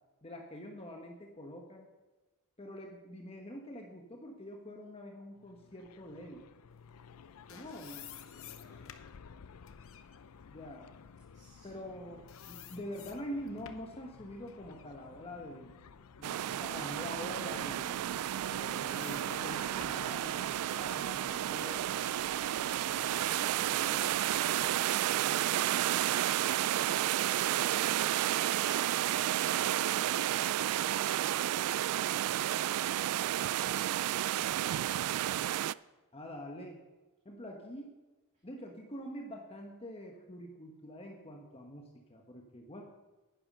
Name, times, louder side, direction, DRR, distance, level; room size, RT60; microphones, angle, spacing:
voice 1, 0.2-1.9 2.6-6.4 7.5-8.0 10.5-10.9 11.6-15.7 16.2-18.0 18.4-21.8 36.1-36.8 37.2-37.9 38.4-42.8, equal, 25° left, 1 dB, 1.2 m, -45 dB
sound 1, 5.3-24.7, left 6 dB, 85° left, 0.5 m, -54 dB
sound 2, 7.1-12.0 12.3-14.0 14.5-16.4 16.9-17.0 18.1-21.1, left 10 dB, 65° left, 0.8 m, -54 dB
voice 2, 7.5-8.9 11.3-11.8 38.3-38.4, right 1 dB, 35° right, -3 dB, 2.2 m, -61 dB
sound 3, 16.2-35.7, right 12 dB, 85° right, 0.3 m, -31 dB
11.0 x 10.0 x 5.4 m, 1.2 s
head